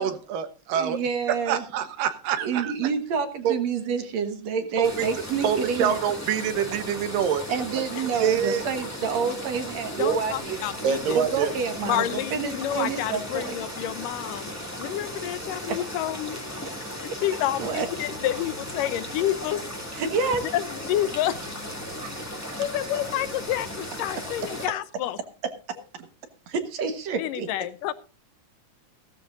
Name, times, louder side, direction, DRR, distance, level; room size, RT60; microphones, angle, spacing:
voice 1, 0.0-1.0 1.3-2.7 3.4-3.6 4.8-5.1 5.4-7.4 7.7-8.6 10.0-10.2 10.8-11.5, right 8 dB, 80° right, 10 dB, 2.9 m, -26 dB
voice 2, 0.7-1.6 2.4-6.0 7.5-10.6 11.1-13.6 15.7-15.8 17.6-17.9 19.9-20.4 22.0-22.7 26.0-26.1 26.5-27.5, right 5 dB, 60° right, 8 dB, 2.3 m, -28 dB
sound 1, 4.8-24.7, left 1 dB, 5° left, 1.7 m, -36 dB
voice 3, 10.0-11.2 11.8-16.4 16.9-19.6 20.5-21.5 22.6-25.2 27.1-27.9, left 12 dB, 80° left, 15 dB, 2.3 m, -29 dB
16.5 x 13.5 x 2.6 m, 0.34 s
omnidirectional pair, 3.9 m